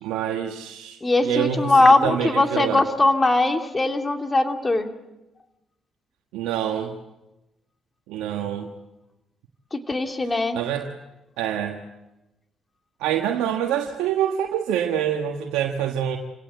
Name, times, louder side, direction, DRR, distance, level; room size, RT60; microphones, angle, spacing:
voice 1, 0.0-1.8 2.0-2.8 6.3-6.9 8.1-8.7 10.5-10.9 11.4-11.8 13.0-16.2, right 9 dB, 85° right, 2 dB, 1.4 m, -26 dB
voice 2, 1.0-4.9 9.7-10.6, left 2 dB, 25° left, 5 dB, 2.8 m, -20 dB
28.0 x 17.0 x 8.1 m, 1.0 s
supercardioid pair, 60°, 0 cm